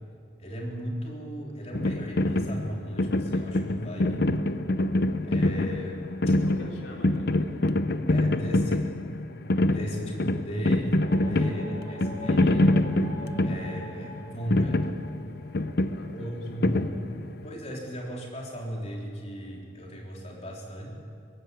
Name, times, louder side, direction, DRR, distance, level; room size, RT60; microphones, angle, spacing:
voice 1, 0.4-4.3 5.3-6.2 8.1-8.9 9.6-10.9 11.3-12.8 13.4-14.9 16.1-16.9 17.4-20.9, equal, 35° left, -2 dB, 4.0 m, -36 dB
sound 1, 1.7-17.5, left 1 dB, 55° left, 0.8 m, -26 dB
voice 2, 6.5-7.7 10.1-10.3 11.3-11.6 15.9-16.7, left 1 dB, 70° left, 0 dB, 3.9 m, -46 dB
sound 2, 11.0-15.5, equal, 65° right, 6.8 m, -40 dB
22.5 x 17.0 x 8.4 m, 2.5 s
head